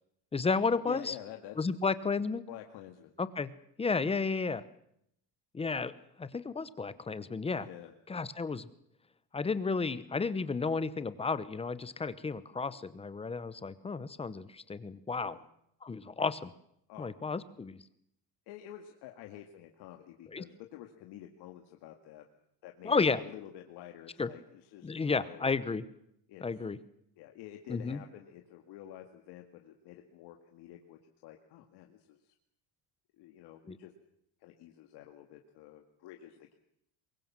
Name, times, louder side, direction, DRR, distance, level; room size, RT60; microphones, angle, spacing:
voice 1, 0.3-1.1 1.6-2.4 3.2-3.5 3.8-4.6 5.5-5.9 6.2-7.7 8.1-8.7 9.3-15.4 15.8-16.5 17.0-17.8 20.3-20.4 22.8-23.2 24.2-24.3 24.8-25.8 26.4-26.8 27.7-28.0 33.7-33.8, left 4 dB, 15° left, 15 dB, 0.9 m, -32 dB
voice 2, 0.9-1.8 2.5-3.1 7.6-7.9 12.7-12.8 15.1-15.4 16.9-17.1 18.5-22.2 22.6-25.5 26.3-26.4 27.2-32.3 33.2-33.9 34.4-36.5, left 12 dB, 75° left, 4 dB, 2.2 m, -49 dB
23.5 x 22.0 x 7.5 m, 0.75 s
cardioid pair, 150°, 41 cm